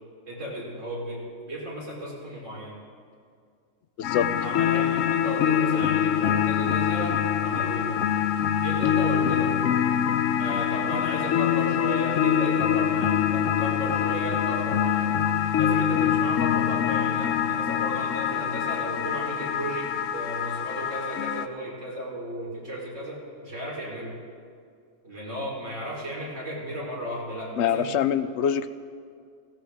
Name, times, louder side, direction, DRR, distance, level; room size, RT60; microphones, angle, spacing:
voice 1, 0.3-2.8 4.3-8.0 8.6-9.6 10.4-15.1 15.6-24.2 25.0-27.9, equal, 70° right, -5 dB, 4.3 m, -34 dB
sound 1, 4.0-21.5, left 9 dB, 85° left, 1.0 m, -24 dB
voice 2, 4.0-4.3 27.6-28.7, left 9 dB, 65° left, 12 dB, 0.8 m, -24 dB
19.0 x 16.5 x 3.5 m, 2.2 s
omnidirectional pair, 1.3 m